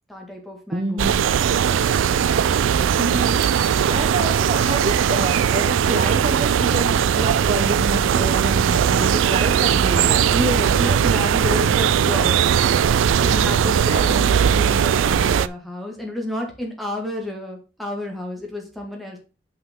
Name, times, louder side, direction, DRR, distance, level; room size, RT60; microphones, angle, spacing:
voice 1, 0.1-1.0 10.3-12.7 13.2-19.2, left 1 dB, ahead, 0 dB, 1.6 m, -30 dB
voice 2, 0.7-1.3 3.0-10.3 13.8-14.2, right 2 dB, 30° right, 5 dB, 0.6 m, -28 dB
sound 1, 1.0-15.5, right 8 dB, 90° right, 0.3 m, -19 dB
5.8 x 5.5 x 3.6 m, 0.34 s
head